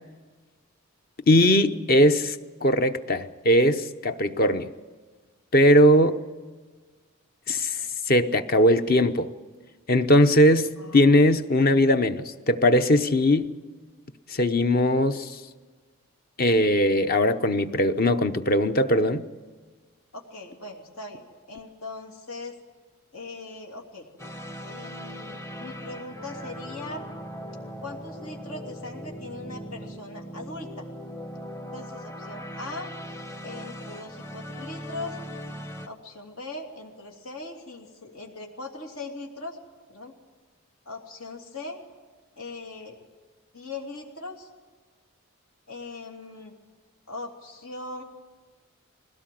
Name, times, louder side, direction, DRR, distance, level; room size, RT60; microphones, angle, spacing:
voice 1, 1.3-2.4 2.6-4.7 5.5-6.2 7.5-7.7 8.1-9.3 9.9-13.5 14.3-15.3 16.4-19.3, left 1 dB, 45° left, 10 dB, 0.8 m, -20 dB
voice 2, 10.8-11.3 20.1-22.6 23.1-24.1 24.6-27.1 27.8-30.9 31.7-32.9 33.4-35.2 35.8-39.6 39.9-40.1 40.8-41.8 42.4-43.0 43.5-44.5 45.7-46.5 47.1-48.0, left 2 dB, 85° left, 1 dB, 2.8 m, -40 dB
sound 1, 24.2-35.9, equal, 10° left, 0.8 m, -39 dB
21.0 x 17.0 x 7.7 m, 1.4 s
head